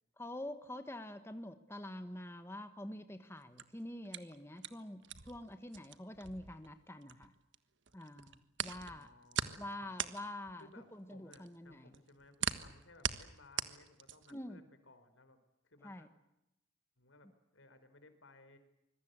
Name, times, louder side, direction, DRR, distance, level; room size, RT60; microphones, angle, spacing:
voice 1, 0.2-7.3 7.9-9.1 9.6-12.0 14.3-14.6 15.8-16.1, left 1 dB, 15° left, 9 dB, 1.4 m, -46 dB
sound 1, 3.4-7.6 7.9-14.4, right 8 dB, 65° right, 1.4 m, -41 dB
voice 2, 8.6-9.9 10.6-15.4 15.6-16.1 17.0-18.6, left 2 dB, 80° left, 10 dB, 4.2 m, -61 dB
25.5 x 22.5 x 8.1 m, 0.86 s
head